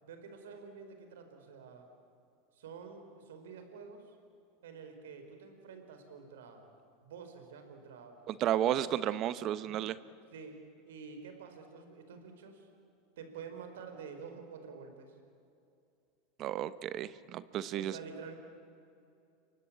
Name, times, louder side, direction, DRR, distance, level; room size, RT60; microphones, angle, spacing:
voice 1, 0.0-1.9 2.5-4.2 4.6-6.7 7.0-8.2 8.7-8.8 9.6-9.9 10.3-12.7 13.2-15.1 17.7-18.4, right 5 dB, 75° right, 6 dB, 4.8 m, -49 dB
voice 2, 8.3-10.0 16.4-18.0, right 11 dB, 45° right, 15 dB, 1.1 m, -33 dB
28.5 x 24.0 x 8.7 m, 2.6 s
hypercardioid pair, 95°, 0 cm